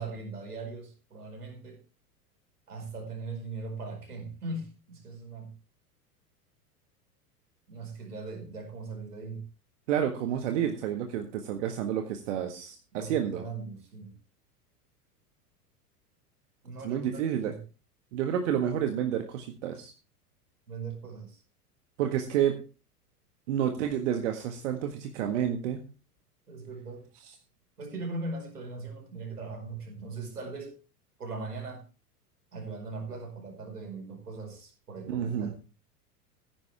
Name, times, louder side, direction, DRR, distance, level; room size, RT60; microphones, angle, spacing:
voice 1, 0.0-1.8 2.7-5.5 7.7-9.4 12.9-14.1 16.6-17.6 20.7-21.4 26.5-27.1 27.8-30.8 31.2-31.8 32.5-35.6, right 3 dB, 75° right, 3 dB, 5.2 m, -39 dB
voice 2, 9.9-13.4 16.8-17.5 18.1-19.9 22.0-22.6 23.5-25.8 35.1-35.5, right 9 dB, 50° right, 5 dB, 1.7 m, -29 dB
15.5 x 10.5 x 3.5 m, 0.32 s
figure-of-eight pair, 90°, 46 cm